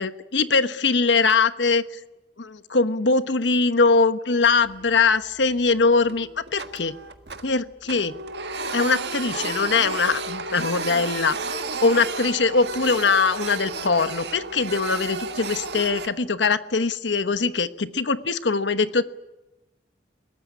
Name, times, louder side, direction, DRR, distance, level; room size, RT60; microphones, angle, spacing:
voice 1, 0.0-1.8 2.4-7.0 7.4-8.2 8.7-11.4 11.8-19.0, left 4 dB, 90° left, 12 dB, 1.1 m, -22 dB
Printer, 4.5-5.1 5.4-5.6 6.0-7.6 7.9-16.1, right 4 dB, 75° right, 1.7 m, -32 dB
Telephone, 9.2-14.4, left 1 dB, 30° left, 6.0 m, -41 dB
22.0 x 18.5 x 10.0 m, 1.0 s
head